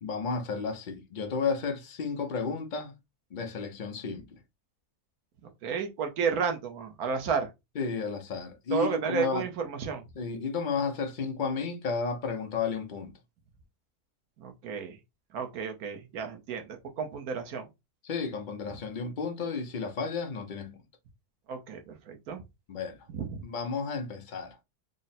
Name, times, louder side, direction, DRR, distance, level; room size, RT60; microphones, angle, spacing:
voice 1, 0.0-2.9 3.3-4.4 7.8-9.4 10.1-13.1 18.0-20.8 22.7-23.1 23.4-24.6, left 5 dB, 80° left, 0.4 m, -32 dB
voice 2, 5.4-7.5 8.7-10.0 14.4-15.0 15.3-17.7 21.5-22.4 23.1-23.4, right 6 dB, 70° right, 1.3 m, -32 dB
3.8 x 2.0 x 4.1 m
omnidirectional pair, 1.7 m